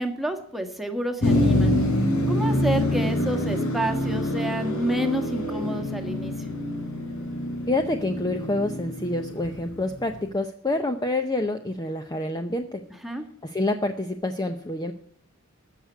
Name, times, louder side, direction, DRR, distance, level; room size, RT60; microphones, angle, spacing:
voice 1, 0.0-1.7 2.3-6.5 13.0-13.2, equal, ahead, 3 dB, 1.5 m, -29 dB
Motor vehicle (road), 1.2-10.2, left 1 dB, 70° left, 3.7 m, -26 dB
voice 2, 7.7-12.8 13.4-14.9, left 2 dB, 20° left, 7 dB, 0.7 m, -27 dB
14.5 x 6.7 x 9.1 m, 0.62 s
head